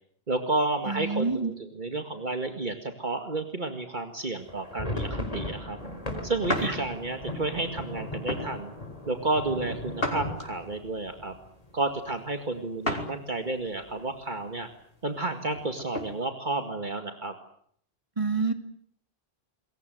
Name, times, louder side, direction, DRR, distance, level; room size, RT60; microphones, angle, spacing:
voice 1, 0.3-5.8 6.2-8.7 9.1-11.3 11.7-14.7 15.0-17.3, right 2 dB, 50° right, 5 dB, 2.2 m, -31 dB
voice 2, 0.9-1.5 6.6-6.7 18.2-18.5, right 4 dB, 30° right, 6 dB, 2.7 m, -27 dB
sound 1, 4.4-12.2 12.5-12.6 12.9-13.1 13.6-14.1, left 1 dB, 40° left, 4.5 m, -37 dB
sound 2, 6.5-6.8 7.3-7.5 8.3-8.5 10.0-10.7 12.8-13.2 13.6-13.7 15.4-16.1, left 1 dB, 70° left, 4.9 m, -32 dB
27.5 x 22.5 x 7.9 m, 0.66 s
omnidirectional pair, 1.0 m